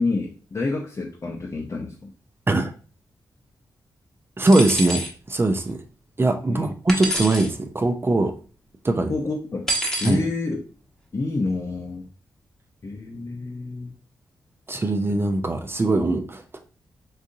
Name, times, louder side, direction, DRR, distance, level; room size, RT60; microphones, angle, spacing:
voice 1, 0.0-2.1 6.5-6.7 9.1-9.7 10.0-10.6 11.1-12.1 12.8-13.9, left 3 dB, 40° left, -1 dB, 0.7 m, -28 dB
voice 2, 4.4-5.8 6.2-8.3 8.8-9.1 10.0-10.2 14.7-16.6, right 2 dB, 30° right, 5 dB, 0.5 m, -21 dB
sound 1, 4.5-5.1 6.9-7.5 9.7-10.2, equal, 5° left, 1.0 m, -27 dB
3.8 x 2.6 x 2.6 m, 0.40 s
cardioid pair, 50°, 8 cm